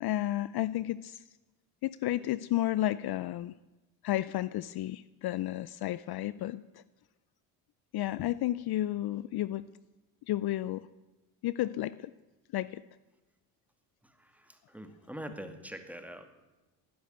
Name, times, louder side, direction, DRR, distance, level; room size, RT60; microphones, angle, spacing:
voice 1, 0.0-1.2 1.8-3.5 4.0-6.6 7.9-9.7 10.3-10.9 11.4-12.1 12.5-12.8, left 14 dB, 55° left, 18 dB, 0.6 m, -32 dB
voice 2, 14.0-16.3, right 1 dB, 5° right, 7 dB, 2.3 m, -44 dB
16.5 x 10.5 x 8.1 m, 1.1 s
supercardioid pair, 75°, 45 cm